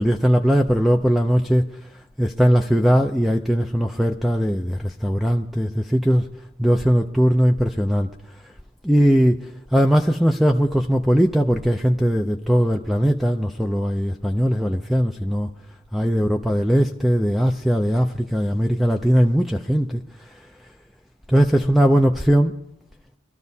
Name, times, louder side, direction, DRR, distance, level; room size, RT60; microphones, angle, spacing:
voice 1, 0.0-1.7 2.2-6.2 6.6-8.1 8.8-9.4 9.7-15.5 15.9-20.0 21.3-22.5, equal, ahead, 0.4 m, -19 dB
24.5 x 13.0 x 2.7 m
head